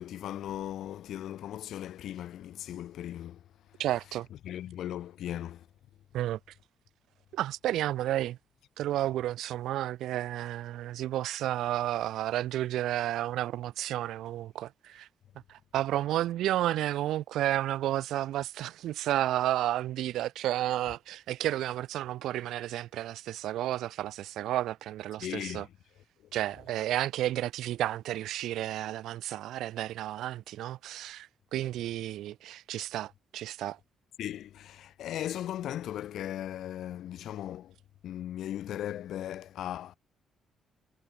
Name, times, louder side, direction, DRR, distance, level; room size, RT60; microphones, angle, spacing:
voice 1, 0.0-3.4 4.4-5.7 25.2-25.7 34.2-37.7 38.0-39.9, left 11 dB, 75° left, 1.1 m, -37 dB
voice 2, 3.8-4.3 6.1-6.4 7.3-8.4 8.8-15.1 15.5-25.7 26.3-33.8, right 13 dB, 85° right, 0.9 m, -32 dB
cardioid pair, 90°, 0 cm